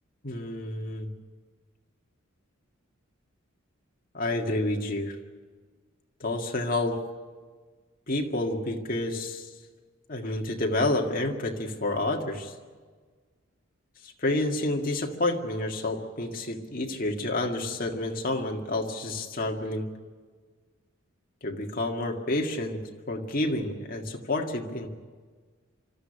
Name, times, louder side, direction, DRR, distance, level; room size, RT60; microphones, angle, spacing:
voice 1, 0.2-1.1 4.1-5.2 6.2-7.0 8.1-9.5 10.1-12.5 14.2-19.9 21.4-22.8 23.1-24.9, left 2 dB, 45° left, 2 dB, 1.9 m, -29 dB
25.0 x 13.5 x 10.0 m, 1.5 s
head